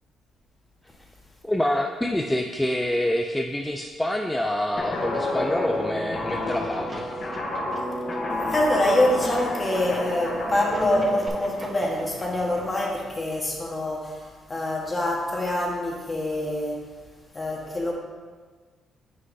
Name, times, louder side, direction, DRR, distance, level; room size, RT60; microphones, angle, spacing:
voice 1, 1.4-7.3, left 1 dB, 5° left, 3 dB, 0.4 m, -27 dB
Guitar, 4.8-11.3, left 1 dB, 45° left, 1.0 m, -29 dB
sound 1, 6.2-12.8, right 1 dB, 35° right, 1.7 m, -45 dB
voice 2, 8.5-16.9 17.3-17.9, left 1 dB, 25° left, -1 dB, 1.4 m, -25 dB
8.1 x 5.5 x 2.7 m, 1.5 s
cardioid pair, 90°, 0 cm